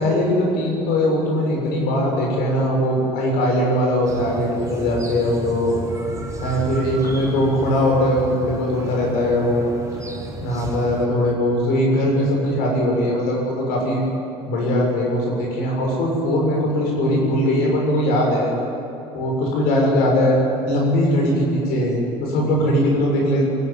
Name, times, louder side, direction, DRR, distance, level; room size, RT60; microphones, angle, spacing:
voice 1, 0.0-5.8 6.4-9.7 10.4-14.0 14.5-18.5 19.1-20.4 20.7-23.5, left 1 dB, 60° left, -1 dB, 7.0 m, -20 dB
sound 1, 4.1-11.1, right 2 dB, 20° right, 4.4 m, -33 dB
23.0 x 15.0 x 9.5 m, 2.9 s
figure-of-eight pair, 60°, 18 cm